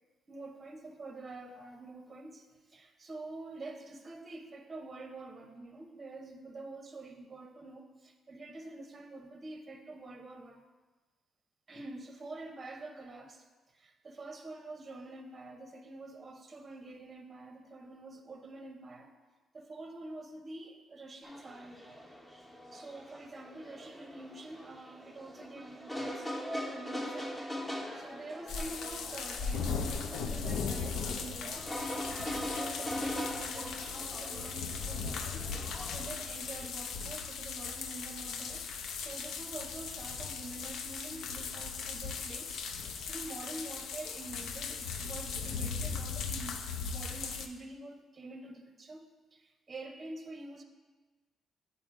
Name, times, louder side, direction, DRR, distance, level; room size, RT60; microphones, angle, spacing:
voice 1, 0.3-2.4 2.7-10.6 11.7-13.4 13.8-19.1 19.5-22.1 22.7-27.3 27.9-31.7 32.1-35.5 35.9-38.7 39.0-42.6 43.1-50.6, right 2 dB, 30° right, 5 dB, 0.7 m, -47 dB
sound 1, 21.2-36.1, equal, 20° left, 1.2 m, -42 dB
sound 2, 28.5-47.5, left 5 dB, 75° left, 0.5 m, -38 dB
8.4 x 4.3 x 3.7 m, 1.3 s
cardioid pair, 90°, 0 cm